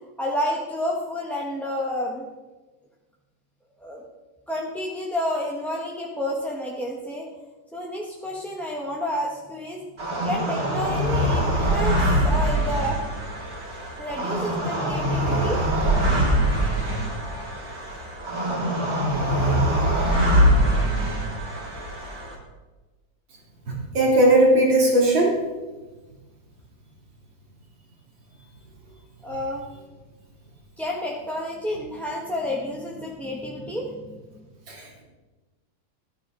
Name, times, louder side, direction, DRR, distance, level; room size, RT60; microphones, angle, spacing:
voice 1, 0.2-2.2 3.8-4.0 4.5-7.3 7.7-9.8 10.2-13.0 14.0-15.6 29.2-29.7 30.8-34.2, left 1 dB, ahead, -3 dB, 1.0 m, -30 dB
sound 1, 10.0-22.4, equal, 50° right, 3.2 m, -23 dB
voice 2, 23.7-25.4 34.7-35.0, right 1 dB, 75° right, -2 dB, 3.7 m, -18 dB
13.0 x 13.0 x 3.8 m, 1.2 s
omnidirectional pair, 2.1 m